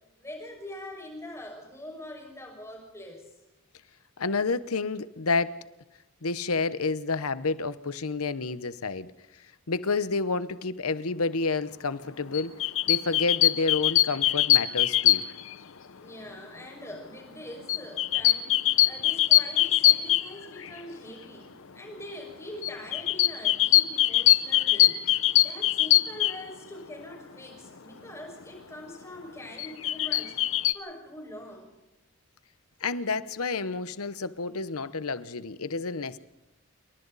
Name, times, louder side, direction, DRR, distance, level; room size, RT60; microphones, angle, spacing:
voice 1, 0.2-3.3 16.0-31.7, left 1 dB, 15° left, 5.9 m, -43 dB
voice 2, 4.2-5.5 6.2-9.1 9.7-12.5 12.9-15.2 32.8-36.2, left 4 dB, 85° left, 1.0 m, -29 dB
sound 1, 12.3-15.5 17.7-20.8 22.6-26.4 29.6-30.7, left 14 dB, 65° left, 0.8 m, -22 dB
28.0 x 23.5 x 4.1 m
head